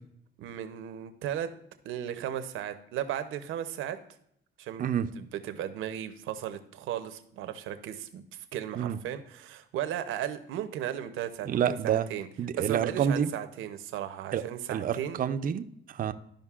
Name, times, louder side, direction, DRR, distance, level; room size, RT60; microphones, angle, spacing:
voice 1, 0.4-1.5 1.8-4.0 4.6-12.3 12.5-15.2, right 10 dB, 90° right, 9 dB, 0.7 m, -36 dB
voice 2, 11.5-12.1 12.4-13.3 14.3-14.4 14.7-16.1, right 8 dB, 45° right, 9 dB, 0.4 m, -28 dB
13.0 x 5.1 x 2.4 m, 0.73 s
cardioid pair, 90°, 20 cm